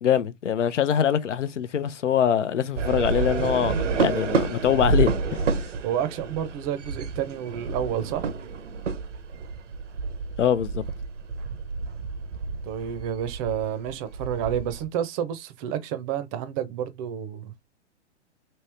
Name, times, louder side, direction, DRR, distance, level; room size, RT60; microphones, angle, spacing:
voice 1, 0.0-5.4 10.4-10.8, left 9 dB, 85° left, 0.6 m, -23 dB
sound 1, 2.7-14.9, right 4 dB, 85° right, 0.7 m, -29 dB
voice 2, 5.8-8.2 12.6-17.6, right 9 dB, 30° right, 0.5 m, -30 dB
3.1 x 2.8 x 3.2 m
hypercardioid pair, 120°, 36 cm